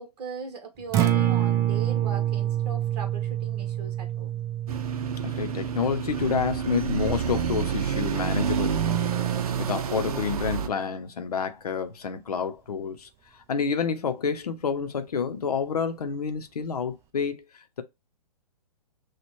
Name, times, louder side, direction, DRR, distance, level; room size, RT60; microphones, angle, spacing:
voice 1, 0.0-4.4, right 5 dB, 40° right, 1.2 m, -39 dB
Acoustic guitar, 0.8-9.0, right 12 dB, 15° right, 0.3 m, -28 dB
sound 1, 4.7-10.7, right 7 dB, 60° right, 0.6 m, -28 dB
voice 2, 5.2-9.0 9.6-13.1 13.5-17.8, left 6 dB, 65° left, 0.8 m, -29 dB
6.0 x 2.4 x 3.0 m
figure-of-eight pair, 120°, 21 cm